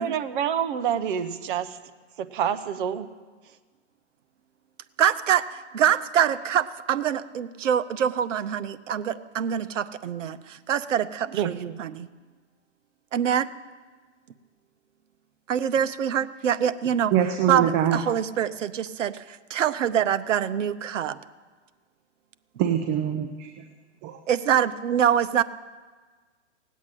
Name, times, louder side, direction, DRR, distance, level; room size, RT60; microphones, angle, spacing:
voice 1, 0.0-1.8 2.2-3.1 11.3-11.5, right 9 dB, 45° right, 10 dB, 1.0 m, -27 dB
voice 2, 5.0-12.1 13.1-13.5 15.5-17.1 17.5-21.2 24.3-25.4, right 9 dB, 85° right, 13 dB, 0.9 m, -25 dB
voice 3, 17.1-18.0 22.6-23.7 24.0-24.2, right 9 dB, 25° right, 6 dB, 0.8 m, -24 dB
17.5 x 8.3 x 9.0 m, 1.4 s
hypercardioid pair, 150°, 36 cm